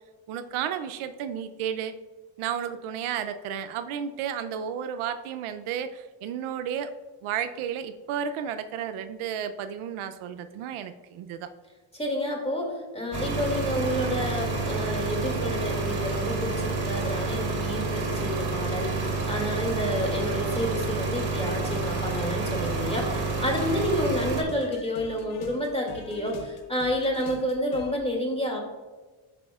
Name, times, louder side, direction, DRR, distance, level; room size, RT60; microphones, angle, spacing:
voice 1, 0.3-1.9 2.4-6.9 7.2-11.5, right 8 dB, 80° right, 9 dB, 0.6 m, -32 dB
voice 2, 11.9-28.6, equal, 10° left, 0 dB, 2.3 m, -29 dB
sound 1, 13.1-24.4, right 3 dB, 50° right, 2.1 m, -29 dB
sound 2, 21.7-28.0, left 4 dB, 70° left, 1.2 m, -45 dB
14.0 x 4.9 x 2.4 m, 1.3 s
cardioid pair, 85°, 49 cm